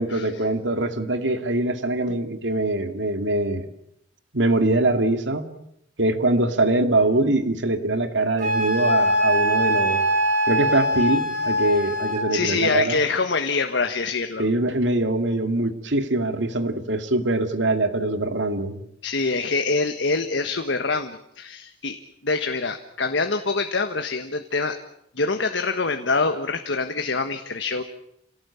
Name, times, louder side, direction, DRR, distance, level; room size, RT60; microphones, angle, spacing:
voice 1, 0.0-3.7 4.3-5.5 6.0-10.0 10.5-13.0 14.4-18.8, right 2 dB, 90° right, 8 dB, 2.3 m, -23 dB
Wind instrument woodwind instrument, 8.4-12.3, equal, 45° right, 6.2 m, -22 dB
voice 2, 12.3-14.5 19.0-24.8 25.1-27.8, left 4 dB, 90° left, 7 dB, 1.5 m, -25 dB
28.0 x 18.0 x 8.6 m, 0.78 s
head